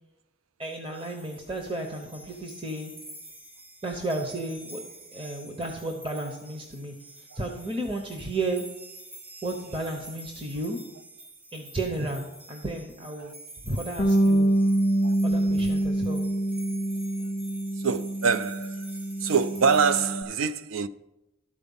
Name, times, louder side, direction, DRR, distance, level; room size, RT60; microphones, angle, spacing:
voice 1, 0.6-2.9 3.8-4.8 5.1-6.9 7.3-8.6 9.4-10.8 11.5-13.3 13.6-14.5 15.2-16.2, right 2 dB, 25° right, 0.7 m, -33 dB
sound 1, 0.9-20.1, right 1 dB, 50° right, 3.8 m, -48 dB
Bass guitar, 14.0-20.2, right 1 dB, 30° left, 0.4 m, -25 dB
voice 2, 17.8-18.9 19.2-20.9, right 5 dB, 80° right, 0.4 m, -25 dB
12.5 x 4.4 x 5.4 m
head